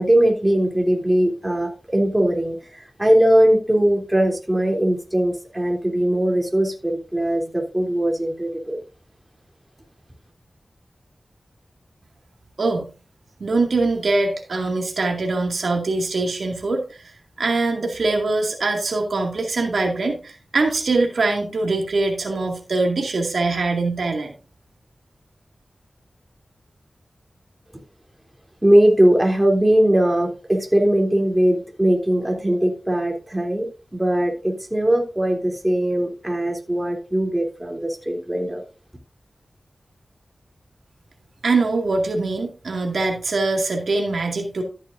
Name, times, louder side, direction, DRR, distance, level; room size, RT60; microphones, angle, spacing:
voice 1, 0.0-8.8 28.6-38.6, right 1 dB, 15° right, 1 dB, 3.2 m, -20 dB
voice 2, 12.6-12.9 13.4-24.3 41.4-44.6, right 3 dB, 80° right, 1 dB, 2.2 m, -23 dB
13.5 x 8.6 x 2.6 m, 0.33 s
wide cardioid pair, 65°, 0 cm